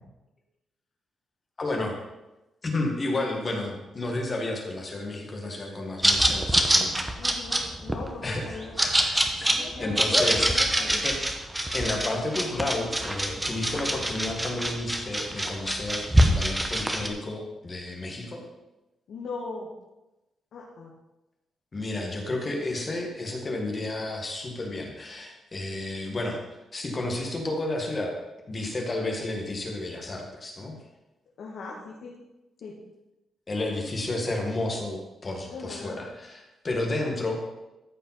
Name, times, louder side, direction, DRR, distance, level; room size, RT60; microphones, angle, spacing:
voice 1, 1.6-2.0 2.6-7.1 8.2-11.2 11.7-18.4 21.7-26.4 26.7-28.1 28.5-30.8 33.5-37.4, left 2 dB, 25° left, 1 dB, 1.8 m, -32 dB
sound 1, 6.0-17.1, right 1 dB, 10° right, 1.0 m, -25 dB
voice 2, 7.2-8.8 9.5-11.0 19.1-19.7 20.5-20.9 31.4-32.1 32.6-32.7 35.5-36.0 36.8-37.1, left 3 dB, 65° left, -4 dB, 2.0 m, -40 dB
13.5 x 5.4 x 5.8 m, 0.99 s
wide cardioid pair, 165°, 0 cm